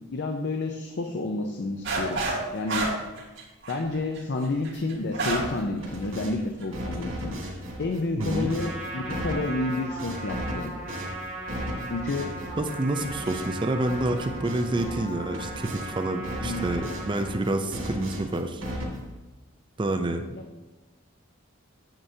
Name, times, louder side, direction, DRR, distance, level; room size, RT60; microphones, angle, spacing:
voice 1, 0.1-2.2 2.5-2.9 3.7-7.3 7.8-10.7 11.9-12.3 16.4-16.7 20.3-20.4, left 2 dB, 55° left, 4 dB, 0.6 m, -30 dB
sound 1, 1.8-2.4 2.7-5.6 5.9-6.0 6.6-6.9, right 3 dB, 60° right, 2.6 m, -29 dB
sound 2, 5.3-6.4 6.7-15.9 16.2-19.2, equal, 85° right, 2.1 m, -36 dB
voice 2, 8.2-8.5 12.6-18.6 19.8-20.2, right 2 dB, 25° right, 6 dB, 0.4 m, -28 dB
Trumpet, 8.4-17.4, right 1 dB, 5° right, 1.5 m, -38 dB
8.9 x 7.8 x 2.7 m, 1.1 s
head